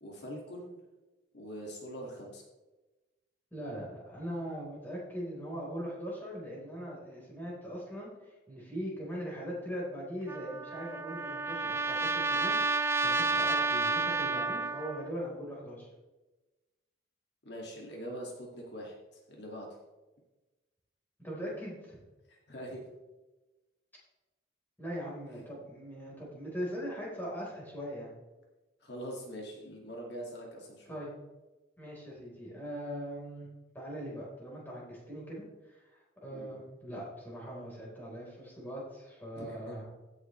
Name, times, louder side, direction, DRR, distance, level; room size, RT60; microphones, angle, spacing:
voice 1, 0.0-0.8 1.3-2.4 17.4-19.8 22.3-22.9 28.8-31.0 36.3-36.6 39.4-39.8, equal, 60° left, -1 dB, 2.2 m, -43 dB
voice 2, 3.5-15.9 21.2-22.0 24.8-28.1 30.9-31.1 31.8-33.5 33.7-39.9, equal, 10° left, -5 dB, 4.2 m, -41 dB
Trumpet, 10.3-15.1, right 3 dB, 15° right, 0.4 m, -30 dB
16.0 x 8.0 x 3.3 m, 1.1 s
head